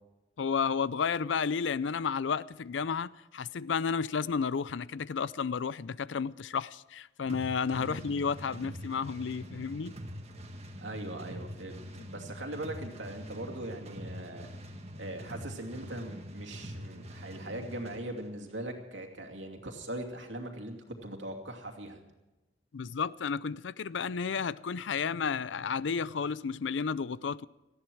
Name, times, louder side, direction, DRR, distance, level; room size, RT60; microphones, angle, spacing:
voice 1, 0.4-9.9 22.7-27.5, left 6 dB, 75° left, 0.5 m, -32 dB
sound 1, 7.3-18.0, equal, 35° right, 1.6 m, -44 dB
voice 2, 10.8-14.5 14.9-22.0, right 1 dB, 80° right, 2.6 m, -40 dB
18.5 x 14.0 x 4.7 m
head